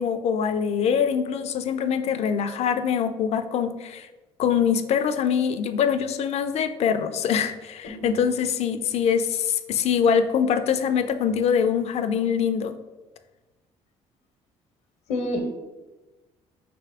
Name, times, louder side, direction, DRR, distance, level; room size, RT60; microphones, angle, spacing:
voice 1, 0.0-4.1 4.4-12.7, left 7 dB, 60° left, 10 dB, 0.4 m, -24 dB
voice 2, 7.8-8.2 15.1-15.4, left 1 dB, 85° left, 3 dB, 0.8 m, -28 dB
3.4 x 3.1 x 4.8 m, 1.1 s
supercardioid pair, 75°, 12 cm